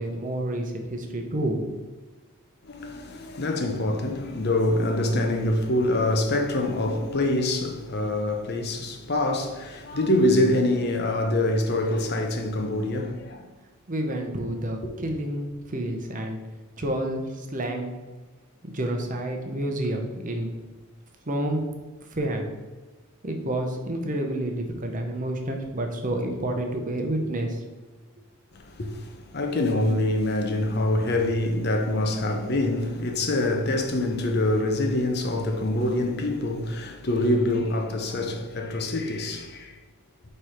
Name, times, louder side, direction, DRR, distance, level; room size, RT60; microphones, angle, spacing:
voice 1, 0.0-1.6 13.9-16.4 16.8-17.9 18.6-20.5 21.3-21.6 22.1-22.5 23.2-27.6, right 1 dB, 35° right, 0.8 m, -29 dB
voice 2, 2.6-13.4 28.5-39.7, left 1 dB, 45° left, 0.7 m, -25 dB
4.8 x 4.4 x 4.9 m
head